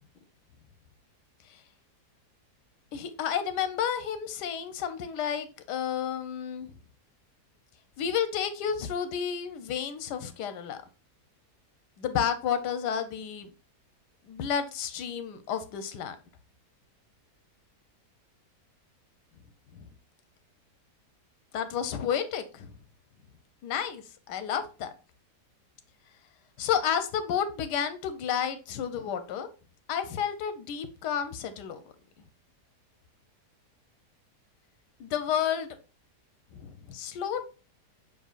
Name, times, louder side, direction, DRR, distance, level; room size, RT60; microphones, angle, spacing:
voice 1, 2.9-6.7 8.0-10.8 12.0-13.5 14.3-16.2 19.7-19.9 21.5-22.7 23.6-24.9 26.6-29.5 29.9-31.8 35.0-35.8 36.5-37.4, left 8 dB, 90° left, 1.2 m, -31 dB
5.3 x 3.7 x 2.4 m
omnidirectional pair, 1.8 m